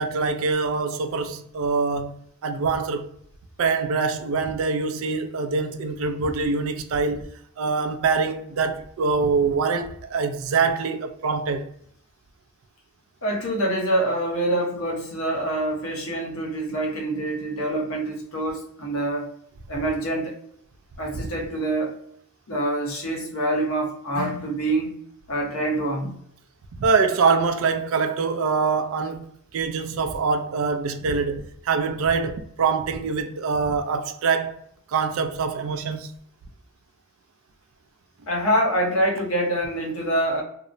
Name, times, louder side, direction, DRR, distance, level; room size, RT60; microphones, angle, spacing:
voice 1, 0.0-3.1 3.6-7.3 7.6-11.6 19.7-19.8 21.1-21.2 26.8-34.6 34.9-36.1, right 4 dB, 65° right, 0.3 m, -24 dB
voice 2, 13.2-19.3 19.7-20.3 21.0-22.0 22.5-24.9 25.3-26.2 38.3-40.4, right 1 dB, 70° left, 0.9 m, -25 dB
2.8 x 2.0 x 2.5 m
head